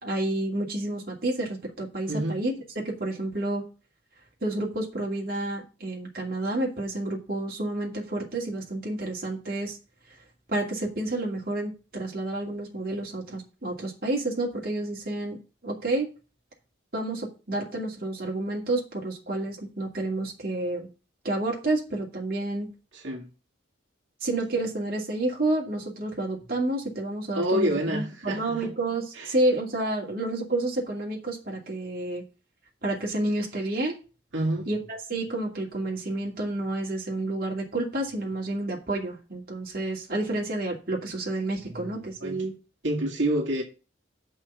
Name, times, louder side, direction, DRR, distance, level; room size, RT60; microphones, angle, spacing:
voice 1, 0.0-2.5 2.8-3.6 4.4-9.8 10.5-15.4 15.6-16.1 16.9-20.9 21.2-22.7 24.2-32.2 32.8-33.9 34.7-34.8 35.1-42.5, right 2 dB, 50° right, 2.6 m, -30 dB
voice 2, 2.1-2.4 22.9-23.3 27.3-28.7 29.2-29.3 34.3-34.7 41.8-42.5 42.8-43.6, right 1 dB, 75° right, 2.1 m, -28 dB
6.9 x 5.4 x 6.9 m
head